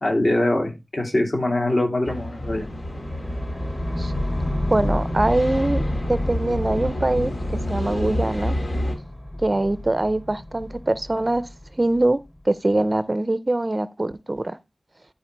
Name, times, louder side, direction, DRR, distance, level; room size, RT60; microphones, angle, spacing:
voice 1, 0.0-2.7, left 1 dB, 55° left, 2.5 m, -23 dB
sound 1, 2.0-9.0, left 1 dB, 75° left, 2.1 m, -29 dB
sound 2, 2.4-12.5, left 1 dB, 30° left, 1.7 m, -31 dB
voice 2, 4.7-5.8 6.1-7.3 7.7-8.6 9.4-11.4 11.8-12.2 12.5-14.6, right 2 dB, 35° right, 0.5 m, -23 dB
12.0 x 4.5 x 3.3 m
wide cardioid pair, 70°, 0 cm